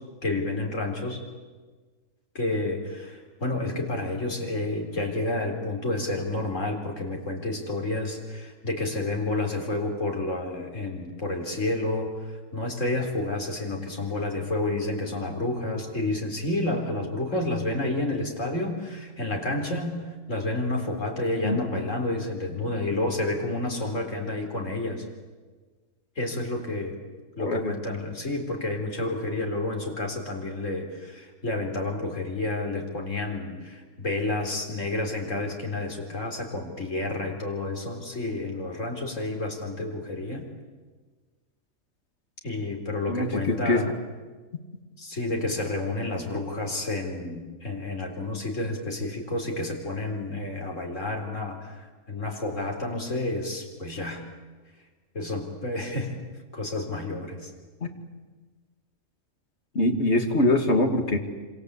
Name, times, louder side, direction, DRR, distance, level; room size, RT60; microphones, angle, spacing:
voice 1, 0.2-1.2 2.3-25.0 26.2-27.0 27.4-40.5 42.4-43.9 45.0-54.2 55.1-56.2 56.5-57.5, left 2 dB, 70° left, 2 dB, 4.5 m, -30 dB
voice 2, 27.4-27.7 43.1-43.9 59.7-61.2, left 2 dB, 55° left, 5 dB, 2.6 m, -23 dB
27.0 x 26.5 x 8.3 m, 1.4 s
omnidirectional pair, 1.3 m